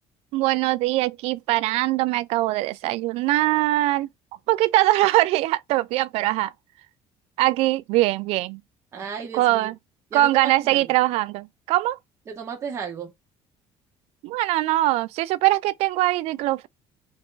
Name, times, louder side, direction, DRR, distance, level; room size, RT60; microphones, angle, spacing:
voice 1, 0.3-4.1 4.5-6.5 7.4-8.6 9.3-9.7 10.1-12.0 14.2-16.7, right 17 dB, 65° right, 0.4 m, -22 dB
voice 2, 8.9-9.7 10.1-10.9 12.3-13.1, right 7 dB, 25° right, 0.8 m, -34 dB
3.5 x 2.5 x 3.7 m
cardioid pair, 175°, 11 cm